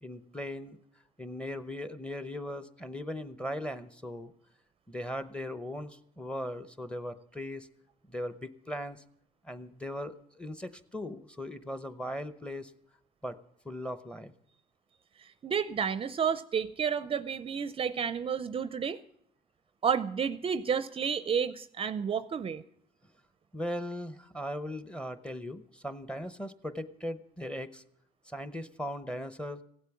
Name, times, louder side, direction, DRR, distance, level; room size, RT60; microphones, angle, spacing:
voice 1, 0.0-0.8 1.2-4.3 4.9-7.7 8.1-9.0 9.4-12.7 13.2-13.4 13.6-14.3 23.5-27.8 28.3-29.6, left 1 dB, 5° left, 12 dB, 0.8 m, -38 dB
voice 2, 15.2-19.0 19.8-22.6, right 7 dB, 35° right, 14 dB, 0.5 m, -31 dB
16.0 x 8.3 x 7.1 m, 0.72 s
cardioid pair, 110°, 17 cm